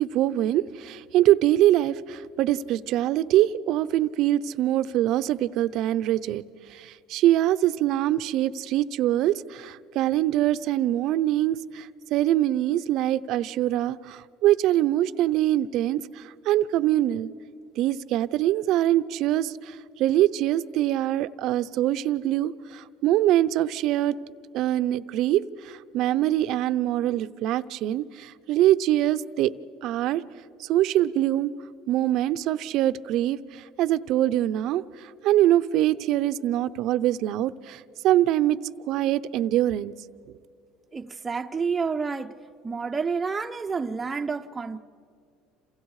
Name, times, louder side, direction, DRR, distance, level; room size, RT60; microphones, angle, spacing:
voice 1, 0.0-6.4 6.7-17.3 17.8-24.2 24.5-29.5 29.8-30.2 30.6-31.5 31.9-34.8 35.2-38.6 38.9-39.9, right 13 dB, 60° right, 0.7 m, -24 dB
voice 2, 40.9-42.4 42.6-44.8, right 5 dB, 20° right, 0.7 m, -29 dB
28.5 x 28.0 x 4.8 m
supercardioid pair, 115°, 0 cm